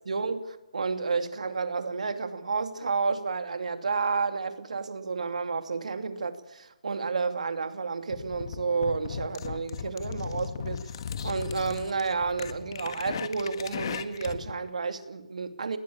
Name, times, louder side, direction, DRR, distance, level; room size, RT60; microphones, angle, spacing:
voice 1, 0.1-0.4 0.7-10.9 11.2-15.8, right 4 dB, 80° right, 2.6 m, -31 dB
sound 1, 8.1-14.5, left 7 dB, 45° left, 1.7 m, -37 dB
20.0 x 19.5 x 8.8 m
hypercardioid pair, 165°, 4 cm